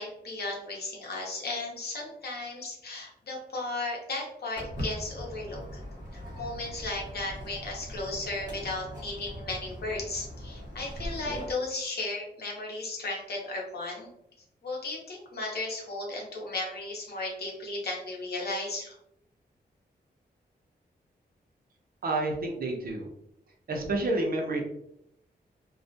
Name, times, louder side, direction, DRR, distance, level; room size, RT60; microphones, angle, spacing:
voice 1, 0.0-5.8 6.1-14.1 14.6-19.0, left 2 dB, 70° left, -2 dB, 0.8 m, -35 dB
Walk footsteps, 4.6-11.5, equal, 25° right, 0.9 m, -40 dB
voice 2, 22.0-23.1 23.7-24.6, right 2 dB, 60° right, 1 dB, 0.5 m, -29 dB
2.3 x 2.1 x 2.6 m, 0.76 s
wide cardioid pair, 135°, 17 cm